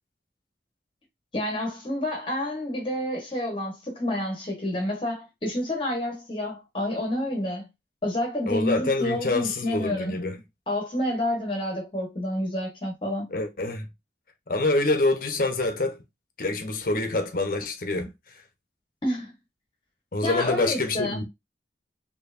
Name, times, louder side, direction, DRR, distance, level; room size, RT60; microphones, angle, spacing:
voice 1, 1.3-7.7 8.0-10.1 10.7-13.3 19.0-19.3 20.2-21.2, left 1 dB, 30° left, 1.3 m, -29 dB
voice 2, 8.5-10.4 13.3-13.9 14.5-16.0 16.4-18.1 20.1-21.2, left 2 dB, 50° left, 0.9 m, -26 dB
4.5 x 3.0 x 2.6 m
head